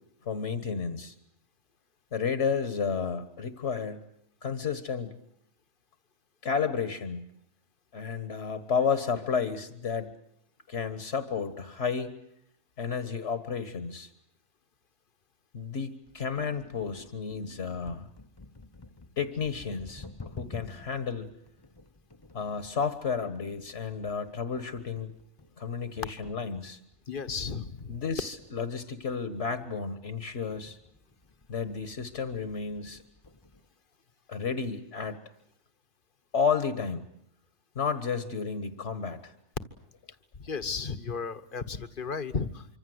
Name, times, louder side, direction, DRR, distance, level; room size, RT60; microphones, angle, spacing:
voice 1, 0.3-1.1 2.1-4.1 4.4-5.2 6.4-7.3 7.9-10.1 10.7-12.1 12.8-14.1 15.5-18.1 19.2-21.3 22.3-25.1 25.6-26.8 27.9-30.8 31.5-33.0 34.3-35.2 36.3-37.0 37.8-39.3, left 6 dB, 60° left, 11 dB, 1.8 m, -32 dB
sound 1, 16.0-33.7, left 3 dB, 20° left, 1.0 m, -51 dB
voice 2, 27.1-27.9 40.4-42.7, left 5 dB, 45° left, 12 dB, 1.4 m, -34 dB
25.5 x 25.0 x 8.0 m, 0.74 s
omnidirectional pair, 1.3 m